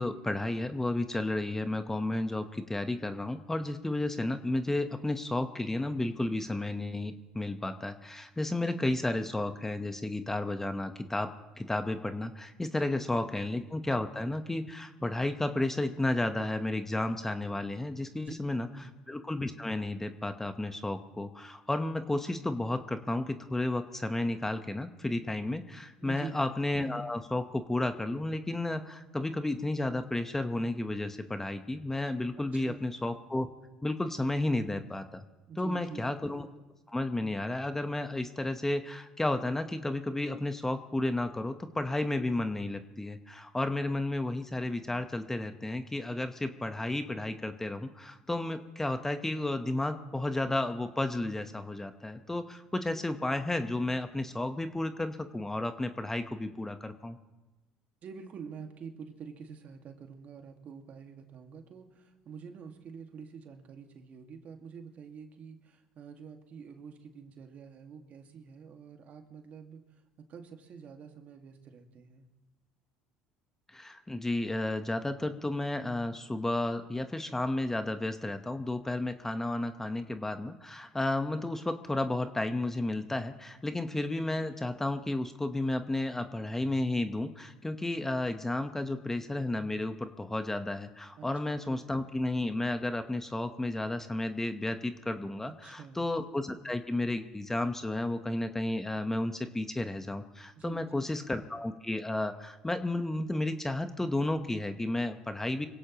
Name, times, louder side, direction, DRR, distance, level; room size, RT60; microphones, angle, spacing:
voice 1, 0.0-11.3 11.6-18.7 19.1-33.5 33.8-35.2 35.6-36.5 36.9-57.2 73.7-105.7, left 2 dB, 10° left, 8 dB, 1.2 m, -32 dB
voice 2, 26.0-26.4 32.4-32.9 35.5-36.1 58.0-72.3 91.2-91.3 95.4-96.1 100.6-101.1, right 6 dB, 50° right, 4 dB, 2.0 m, -47 dB
25.5 x 16.5 x 3.1 m, 1.1 s
hypercardioid pair, 75°, 3 cm